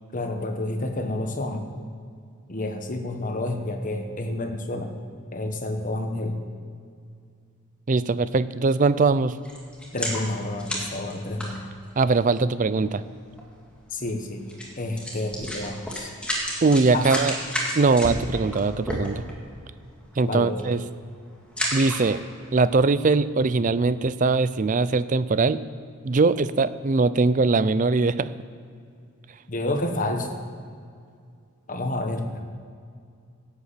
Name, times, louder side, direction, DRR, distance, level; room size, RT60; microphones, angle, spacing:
voice 1, 0.1-1.7 2.5-5.0 5.3-6.4 9.9-11.7 13.9-16.1 16.9-17.1 20.2-20.7 29.5-30.4 31.7-32.5, left 2 dB, 35° left, 5 dB, 1.2 m, -29 dB
voice 2, 7.9-9.4 12.0-13.0 16.6-17.3 17.7-19.3 20.2-20.8 21.7-22.2 22.5-25.6 26.0-28.3, right 3 dB, 35° right, 15 dB, 0.4 m, -21 dB
sound 1, 9.4-12.2 13.0-13.1 13.4-13.5 14.5-14.7 15.0-19.5 20.0-20.2 20.5-20.9 21.4-22.3 22.8-22.9, equal, 5° left, 2.1 m, -31 dB
11.5 x 8.2 x 8.2 m, 2.3 s
head